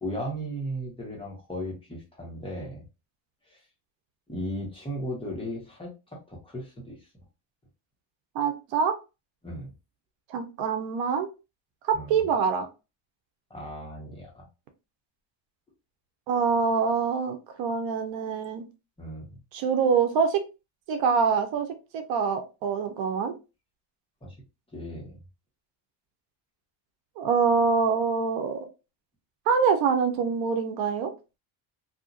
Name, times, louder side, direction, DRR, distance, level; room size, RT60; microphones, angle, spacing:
voice 1, 0.0-2.8 3.5-3.6 4.3-7.0 9.4-9.7 11.9-12.3 13.5-14.5 19.0-19.4 24.2-24.3 24.7-25.2, equal, 10° left, -3 dB, 1.2 m, -36 dB
voice 2, 8.3-9.0 10.3-11.3 11.9-12.7 16.3-18.7 19.5-20.4 20.9-21.7 21.9-23.3 27.2-28.6 29.5-31.1, right 6 dB, 70° right, 6 dB, 0.7 m, -25 dB
2.7 x 2.5 x 2.4 m, 0.28 s
cardioid pair, 130°, 47 cm